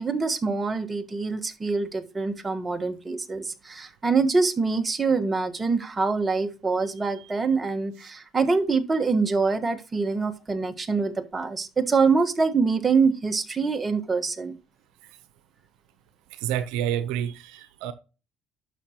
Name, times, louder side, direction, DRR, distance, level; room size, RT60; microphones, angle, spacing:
voice 1, 0.0-14.5, right 4 dB, 25° right, 1.4 m, -25 dB
voice 2, 16.3-17.9, right 10 dB, 85° right, 0.7 m, -30 dB
11.5 x 6.1 x 3.0 m
supercardioid pair, 90°, 0 cm